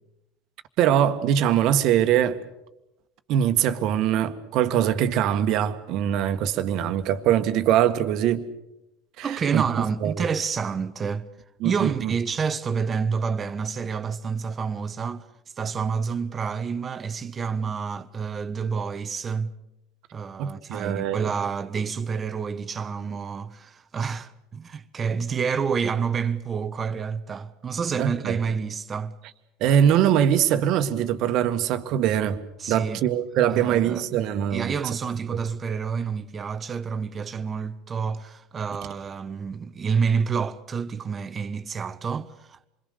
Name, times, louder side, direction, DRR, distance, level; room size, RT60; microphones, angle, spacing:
voice 1, 0.8-2.4 3.3-8.4 9.2-9.6 10.0-10.2 11.6-12.1 20.4-21.3 28.0-28.4 29.6-32.4 32.7-34.7, right 10 dB, 60° right, 1.6 m, -22 dB
voice 2, 9.2-11.3 11.6-15.3 15.6-19.5 20.1-29.1 32.6-33.0 33.5-34.1 34.5-42.7, right 6 dB, 30° right, 1.2 m, -28 dB
27.0 x 22.0 x 6.8 m
hypercardioid pair, 85°, 0 cm